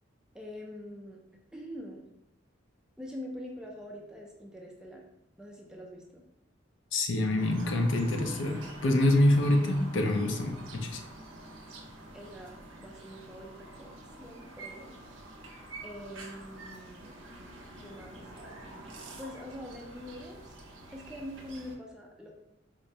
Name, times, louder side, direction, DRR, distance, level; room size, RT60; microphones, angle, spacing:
voice 1, 0.3-1.2 1.5-2.0 3.0-5.0 5.4-6.2 12.1-15.2 15.8-17.1 17.8-18.3 19.2-20.6 20.9-22.3, left 1 dB, 5° right, -1 dB, 0.3 m, -44 dB
voice 2, 6.9-11.0, left 1 dB, 70° left, 4 dB, 0.4 m, -26 dB
sound 1, 7.4-21.8, right 2 dB, 70° right, 0.6 m, -47 dB
4.3 x 2.0 x 2.7 m, 0.85 s
head